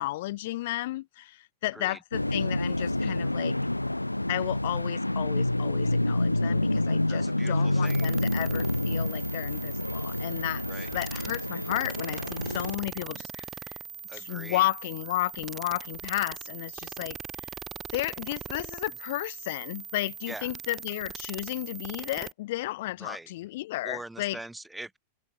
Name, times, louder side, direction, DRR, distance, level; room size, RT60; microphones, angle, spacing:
voice 1, 0.0-3.6 4.3-10.6 10.9-13.8 14.1-17.2 17.9-24.4, left 17 dB, 55° left, 2.1 m, -33 dB
sound 1, 2.1-12.8, left 1 dB, 85° left, 0.3 m, -28 dB
voice 2, 7.1-8.1 10.7-10.9 14.1-14.7 20.3-20.5 23.0-23.3 23.8-25.0, right 2 dB, 5° right, 3.6 m, -42 dB
sound 2, 7.9-22.3, right 8 dB, 20° right, 4.3 m, -41 dB
figure-of-eight pair, 90°, 0 cm